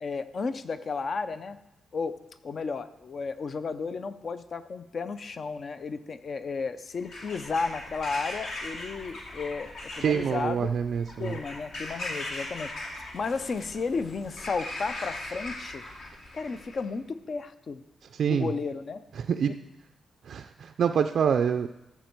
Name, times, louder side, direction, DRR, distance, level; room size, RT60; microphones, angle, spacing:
voice 1, 0.0-1.6 1.9-2.2 2.4-9.7 10.0-10.7 11.2-15.8 16.3-17.8 18.2-19.0 19.5-19.6, left 4 dB, 40° left, 12 dB, 0.6 m, -33 dB
Bird vocalization bird call bird song / Crow, 7.0-16.8, left 2 dB, 60° left, 2.3 m, -39 dB
voice 2, 10.0-11.4 18.1-18.5 19.2-19.5 20.3-21.7, right 7 dB, 60° right, 7 dB, 0.4 m, -26 dB
13.5 x 7.3 x 4.5 m, 0.91 s
wide cardioid pair, 150°, 0 cm